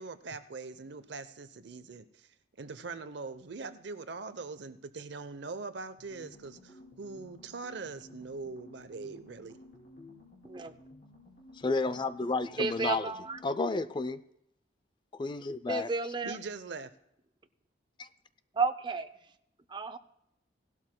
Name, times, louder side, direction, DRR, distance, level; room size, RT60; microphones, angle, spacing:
voice 1, 0.0-2.3 2.6-9.6 16.2-16.9, right 4 dB, 65° right, 0.7 m, -42 dB
sound 1, 6.0-13.6, left 1 dB, 45° left, 3.3 m, -55 dB
voice 2, 11.5-13.1 13.4-14.2 15.1-15.9 18.0-18.1, left 3 dB, 25° left, 0.4 m, -31 dB
voice 3, 12.6-13.4 15.7-16.4 18.5-19.1 19.7-20.0, right 4 dB, 25° right, 0.5 m, -32 dB
17.5 x 12.0 x 2.2 m
head